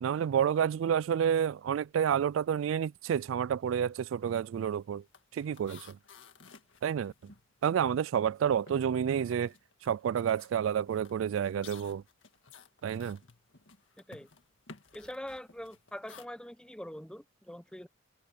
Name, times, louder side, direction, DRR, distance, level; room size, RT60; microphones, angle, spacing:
voice 1, 0.0-5.0 5.3-6.0 6.8-7.1 7.6-9.5 9.8-12.0 12.8-13.2, right 8 dB, 80° right, 0.3 m, -29 dB
sound 1, 3.6-3.9 4.2-8.2 8.6-16.3, left 5 dB, 70° left, 2.0 m, -56 dB
voice 2, 14.9-17.9, left 1 dB, 5° left, 1.1 m, -43 dB
open air
head